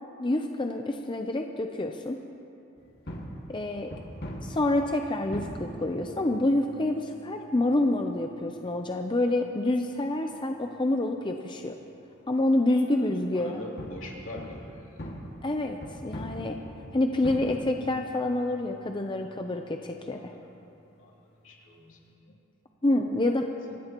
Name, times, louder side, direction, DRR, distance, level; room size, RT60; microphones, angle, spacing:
voice 1, 0.2-2.2 3.5-4.0 4.4-11.8 12.3-13.6 15.4-16.6 16.9-20.3 22.8-23.5, left 1 dB, 25° left, 4 dB, 0.6 m, -27 dB
sound 1, 2.8-22.1, equal, 55° left, 2.1 m, -44 dB
voice 2, 12.9-15.0 20.0-21.1 21.4-22.0 22.2-22.3 23.2-23.3 23.7-23.8, left 1 dB, 75° left, -3 dB, 2.9 m, -44 dB
25.0 x 17.5 x 3.0 m, 2.8 s
head